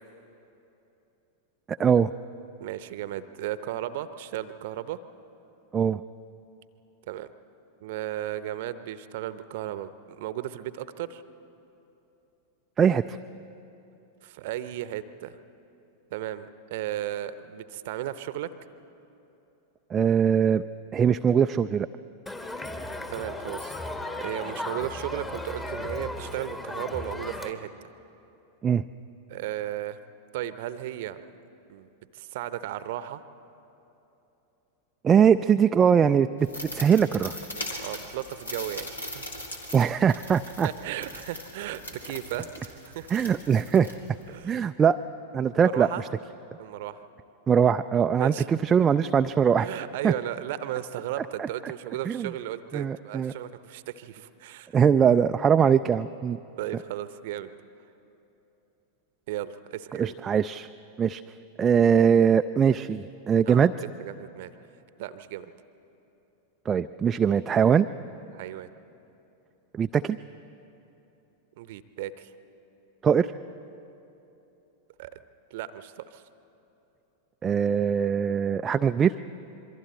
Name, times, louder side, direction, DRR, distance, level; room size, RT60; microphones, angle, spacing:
voice 1, 1.7-2.1 5.7-6.0 12.8-13.2 19.9-20.6 20.9-21.9 28.6-28.8 35.0-37.4 39.7-40.7 43.1-43.9 44.4-45.0 45.3-46.1 47.5-49.7 50.0-50.1 51.2-51.7 52.1-52.3 52.7-53.3 54.7-56.4 60.0-60.7 61.0-61.2 61.6-63.7 66.7-67.9 69.7-70.2 73.0-73.3 77.4-79.2, right 7 dB, 20° right, 8 dB, 0.3 m, -22 dB
voice 2, 2.6-5.0 7.1-7.3 7.8-11.2 14.2-15.4 16.1-18.5 23.1-23.8 24.2-27.7 29.3-30.0 30.3-31.2 31.7-33.2 37.8-39.2 40.6-43.1 44.3-44.7 45.6-46.0 46.6-47.0 48.2-48.5 49.6-54.7 56.6-57.5 59.3-60.1 63.4-63.7 64.0-64.5 65.0-65.5 68.3-68.7 71.6-72.3 75.0-75.1 75.5-76.2, right 12 dB, 50° right, 13 dB, 0.8 m, -35 dB
Crowd, 22.3-27.5, left 1 dB, 15° left, 1.3 m, -35 dB
sound 1, 36.4-44.4, left 1 dB, 80° left, 2.4 m, -40 dB
27.0 x 23.0 x 4.3 m, 3.0 s
figure-of-eight pair, 90°, 0 cm